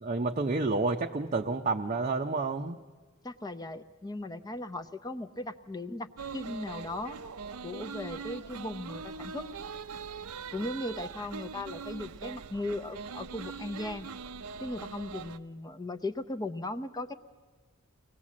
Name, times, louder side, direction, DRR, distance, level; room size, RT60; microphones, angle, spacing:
voice 1, 0.0-2.8, right 3 dB, 35° right, 2 dB, 0.6 m, -29 dB
voice 2, 3.2-6.1 6.3-7.2 7.6-9.5 10.5-14.1 14.6-17.1, left 2 dB, 20° left, 11 dB, 0.6 m, -37 dB
sound 1, 6.2-15.4, right 5 dB, 85° right, 0.6 m, -42 dB
23.5 x 18.5 x 7.4 m, 1.4 s
head